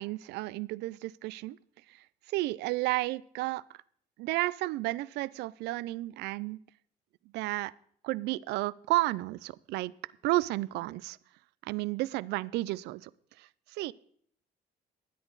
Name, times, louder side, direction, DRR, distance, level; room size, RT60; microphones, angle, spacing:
voice 1, 0.0-1.6 1.9-3.8 4.2-6.6 7.3-7.7 8.0-11.2 11.6-13.1 13.4-13.9, right 19 dB, 85° right, 22 dB, 0.4 m, -32 dB
13.0 x 10.0 x 3.9 m, 0.62 s
cardioid pair, 110°, 17 cm